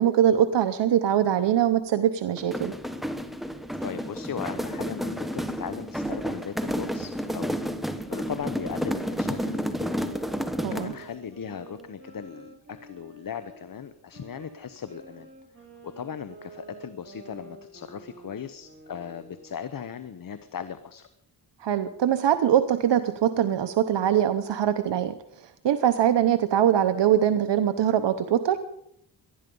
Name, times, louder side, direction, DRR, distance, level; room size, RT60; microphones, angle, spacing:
voice 1, 0.0-2.7 10.6-10.9 21.6-25.1 25.6-28.6, right 10 dB, 85° right, 9 dB, 0.9 m, -22 dB
sound 1, 2.4-11.0, equal, ahead, 1.3 m, -31 dB
voice 2, 3.8-7.6 8.1-9.9 10.6-15.3 15.8-21.1, left 7 dB, 50° left, 11 dB, 0.9 m, -38 dB
sound 2, 8.4-13.6 14.1-19.7, right 2 dB, 30° right, 4.8 m, -49 dB
19.0 x 12.5 x 5.4 m, 0.76 s
cardioid pair, 85°, 42 cm